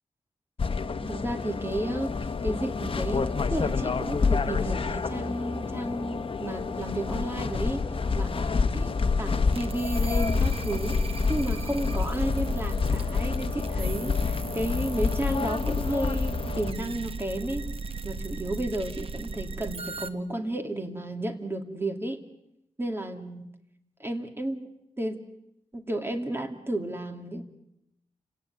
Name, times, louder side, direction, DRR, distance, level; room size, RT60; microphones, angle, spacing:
sound 1, 0.6-16.7, left 4 dB, 50° left, 1.1 m, -28 dB
voice 1, 1.0-7.8 8.1-17.7 18.0-22.2 22.8-23.5 24.0-24.7 25.0-25.2 25.7-27.4, right 1 dB, 20° right, 5 dB, 2.5 m, -32 dB
sound 2, 2.9-10.5, left 2 dB, 15° left, 2.9 m, -44 dB
sound 3, 9.5-20.1, right 4 dB, 50° right, 1.2 m, -37 dB
29.5 x 17.5 x 9.4 m, 0.84 s
wide cardioid pair, 140°, 12 cm